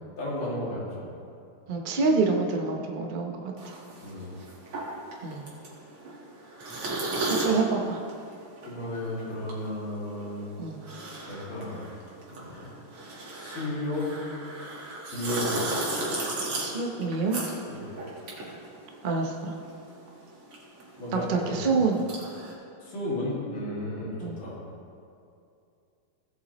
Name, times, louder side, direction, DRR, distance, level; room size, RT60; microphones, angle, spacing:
voice 1, 0.2-1.0 4.0-4.3 8.6-10.5 11.3-11.9 12.3-12.7 13.3-14.1 15.1-15.6 17.7-17.9 21.0-21.7 22.8-24.6, left 1 dB, 65° left, -6 dB, 3.2 m, -33 dB
voice 2, 1.7-3.5 5.2-5.5 7.3-8.0 10.6-10.8 16.6-17.4 19.0-19.6 21.1-22.0 24.2-24.4, right 4 dB, 65° right, 1 dB, 0.4 m, -27 dB
sound 1, 3.6-19.4 19.6-22.5, right 2 dB, 85° right, 2.7 m, -35 dB
16.5 x 8.0 x 3.1 m, 2.5 s
omnidirectional pair, 2.4 m